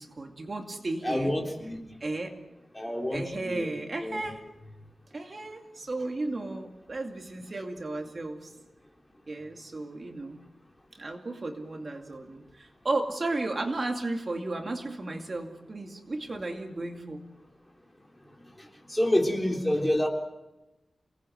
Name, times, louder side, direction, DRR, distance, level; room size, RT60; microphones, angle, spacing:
voice 1, 0.0-1.3 2.0-2.3 3.1-4.4 5.1-8.5 9.3-10.4 11.0-17.2, right 2 dB, 35° right, 3 dB, 2.3 m, -34 dB
voice 2, 1.0-1.8 2.7-3.7 4.0-4.2 18.6-20.1, left 1 dB, 10° left, 1 dB, 3.8 m, -28 dB
29.0 x 19.5 x 7.9 m, 0.99 s
wide cardioid pair, 150°, 0 cm